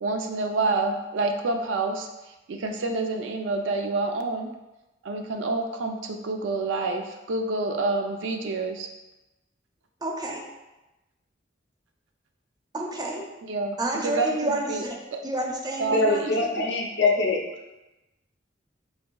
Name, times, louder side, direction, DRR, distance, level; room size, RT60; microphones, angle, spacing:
voice 1, 0.0-2.0 2.5-4.5 5.1-8.9 13.5-13.8 14.0-14.3 14.7-14.8 15.1-15.2 15.8-16.7, right 3 dB, 80° right, 4 dB, 0.4 m, -28 dB
voice 2, 10.0-10.4 12.7-13.2 13.8-15.0 15.2-16.5, right 1 dB, 20° right, 0 dB, 0.4 m, -29 dB
voice 3, 15.9-17.4, left 3 dB, 65° left, 0 dB, 0.5 m, -23 dB
4.0 x 2.6 x 2.2 m, 1.0 s
head